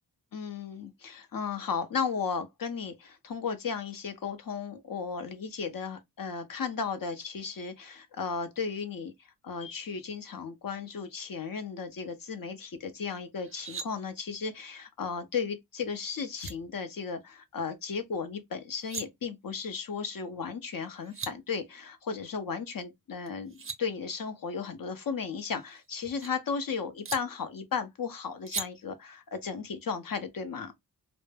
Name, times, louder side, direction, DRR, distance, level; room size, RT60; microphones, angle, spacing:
voice 1, 0.3-30.7, left 5 dB, 60° left, 0.6 m, -35 dB
sound 1, 13.4-13.9 15.9-16.0 16.3-16.5 18.6-19.0 20.7-20.8 21.0-21.3 23.3-23.8 25.3-26.3 27.0-27.2 28.5-28.7, right 5 dB, 35° right, 0.5 m, -39 dB
2.1 x 2.0 x 3.1 m
wide cardioid pair, 85°, 40 cm